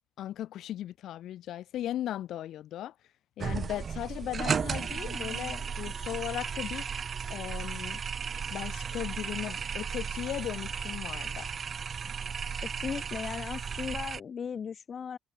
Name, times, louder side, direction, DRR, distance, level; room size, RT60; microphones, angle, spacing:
voice 1, 0.2-2.9 3.4-6.9 7.3-8.0 8.5-11.5, left 12 dB, 80° left, 7.1 m, -37 dB
sound 1, 3.4-14.2, right 6 dB, 45° right, 2.3 m, -35 dB
voice 2, 12.6-15.2, left 7 dB, 50° left, 3.9 m, -37 dB
cardioid pair, 90°, 0 cm